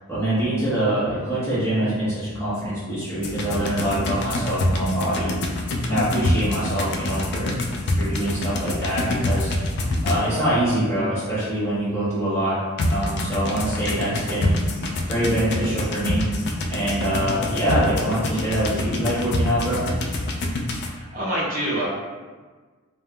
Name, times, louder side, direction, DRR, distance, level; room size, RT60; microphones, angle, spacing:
voice 1, 0.1-5.3 5.9-7.6 7.9-9.5 10.0-12.6 12.9-14.6 15.1-16.2 16.7-19.8, right 1 dB, 15° left, -12 dB, 1.1 m, -24 dB
sound 1, 3.2-10.5 12.8-20.9, left 1 dB, 55° left, 0.3 m, -26 dB
voice 2, 20.8-21.9, right 1 dB, 45° right, -8 dB, 0.8 m, -27 dB
3.3 x 2.0 x 2.3 m, 1.4 s
head